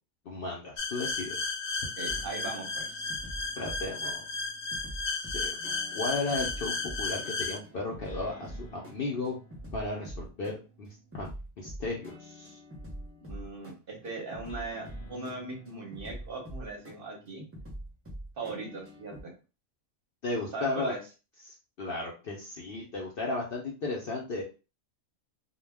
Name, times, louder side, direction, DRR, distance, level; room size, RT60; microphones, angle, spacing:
voice 1, 0.3-1.4 3.6-4.2 5.1-5.6 5.9-9.3 9.7-11.3 11.6-12.6 20.2-21.0 21.5-24.4, left 2 dB, 60° left, -2 dB, 0.6 m, -35 dB
sound 1, 0.8-7.6, left 4 dB, 75° left, 0.9 m, -34 dB
voice 2, 2.0-3.2 13.3-17.4 18.4-19.3 20.5-21.0, right 3 dB, 50° right, 0 dB, 0.8 m, -39 dB
sound 2, 2.1-19.2, right 1 dB, 15° right, 0.5 m, -45 dB
2.2 x 2.2 x 3.3 m, 0.32 s
omnidirectional pair, 1.4 m